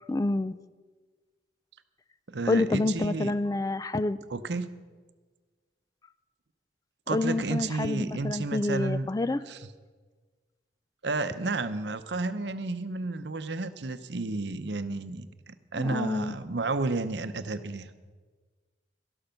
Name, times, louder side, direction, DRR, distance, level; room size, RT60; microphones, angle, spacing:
voice 1, 0.1-0.6 2.5-4.2 7.1-9.4 15.8-16.4, left 2 dB, 20° left, 14 dB, 0.3 m, -28 dB
voice 2, 2.3-3.3 4.3-4.7 7.1-9.1 9.5-9.7 11.0-17.9, right 3 dB, 75° right, 11 dB, 0.8 m, -32 dB
12.5 x 12.0 x 5.8 m, 1.4 s
head